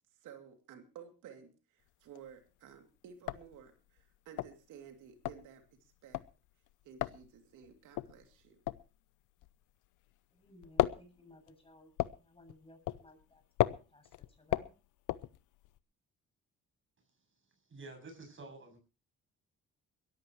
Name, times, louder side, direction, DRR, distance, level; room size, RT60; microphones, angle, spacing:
voice 1, 0.2-6.2 6.8-8.6, right 8 dB, 90° right, 6 dB, 2.8 m, -54 dB
sound 1, 1.9-2.4 2.7-2.8 3.1-10.2 10.4-15.8, left 16 dB, 85° left, 0.7 m, -36 dB
voice 2, 10.3-11.9 12.2-14.7, left 1 dB, 20° left, 5 dB, 7.1 m, -59 dB
voice 3, 17.7-18.8, right 3 dB, 40° right, 6 dB, 7.8 m, -49 dB
22.5 x 14.0 x 3.1 m, 0.32 s
cardioid pair, 90°, 30 cm